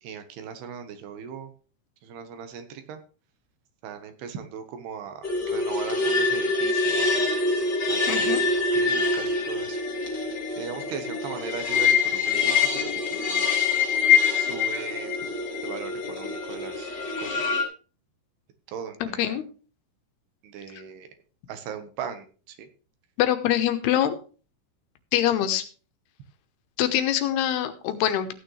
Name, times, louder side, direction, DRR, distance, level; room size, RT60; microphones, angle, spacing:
voice 1, 0.0-1.5 2.0-3.0 3.8-7.3 7.9-9.8 10.6-13.5 14.4-15.2 15.6-17.5 18.7-19.4 20.4-21.1 21.5-22.7, right 7 dB, 80° right, 7 dB, 3.4 m, -38 dB
sound 1, 5.2-17.6, left 4 dB, 30° left, 2.8 m, -25 dB
voice 2, 8.1-8.4 19.0-19.4 23.2-24.2 25.1-25.6 26.8-28.3, left 11 dB, 85° left, 9 dB, 3.1 m, -24 dB
15.0 x 9.3 x 3.3 m, 0.38 s
omnidirectional pair, 4.6 m